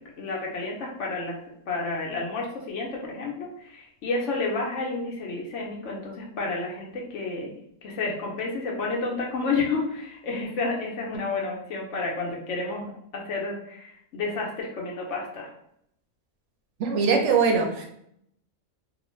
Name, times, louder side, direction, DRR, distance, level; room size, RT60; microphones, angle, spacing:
voice 1, 0.2-1.4 1.7-7.6 7.8-15.5, left 3 dB, 65° left, -1 dB, 0.8 m, -30 dB
voice 2, 16.8-17.9, right 5 dB, 65° right, 2 dB, 0.8 m, -22 dB
2.4 x 2.2 x 3.0 m, 0.73 s
omnidirectional pair, 1.5 m